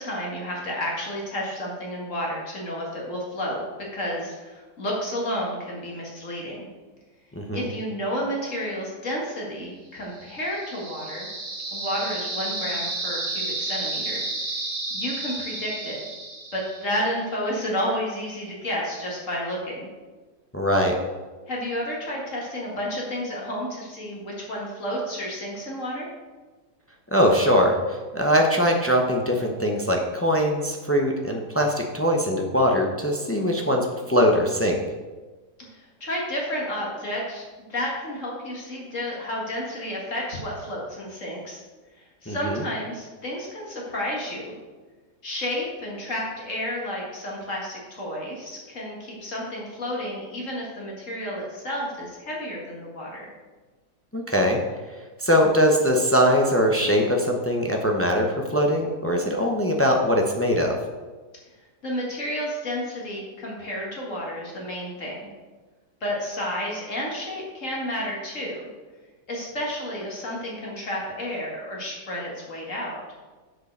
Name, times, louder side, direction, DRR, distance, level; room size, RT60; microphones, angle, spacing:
voice 1, 0.0-3.6 3.9-6.7 7.5-11.3 11.7-14.6 14.9-16.0 16.5-19.9 21.5-26.1 35.6-41.6 42.2-44.5 45.2-53.3 61.8-65.3 66.0-68.7 69.3-73.0, equal, 50° left, -3 dB, 2.1 m, -31 dB
voice 2, 7.3-7.7 20.5-21.0 27.1-34.8 42.3-42.6 54.1-54.6 55.2-60.8, equal, 20° left, 1 dB, 0.3 m, -22 dB
sound 1, 10.1-17.1, right 2 dB, 50° right, 1.9 m, -32 dB
7.5 x 5.1 x 6.5 m, 1.3 s
omnidirectional pair, 1.7 m